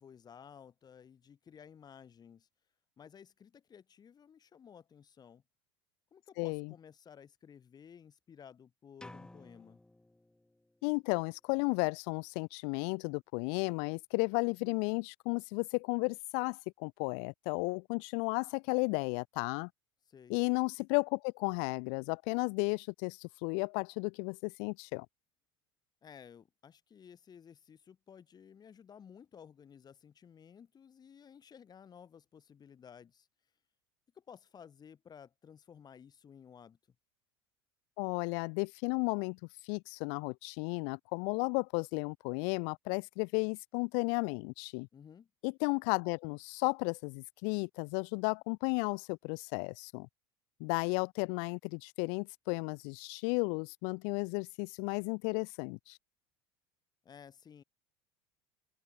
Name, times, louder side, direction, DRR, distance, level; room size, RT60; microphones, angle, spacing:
voice 1, 0.0-2.5 3.0-5.4 6.1-9.8 20.1-20.4 26.0-33.3 34.1-37.0 44.9-45.3 57.0-57.6, left 7 dB, 30° left, 2.4 m, -55 dB
voice 2, 6.4-6.7 10.8-19.7 20.3-25.1 38.0-44.9 45.4-50.1 50.6-56.0, left 40 dB or more, 60° left, 0.4 m, -34 dB
sound 1, 9.0-10.9, left 1 dB, 5° left, 0.8 m, -54 dB
open air
hypercardioid pair, 85°, 13 cm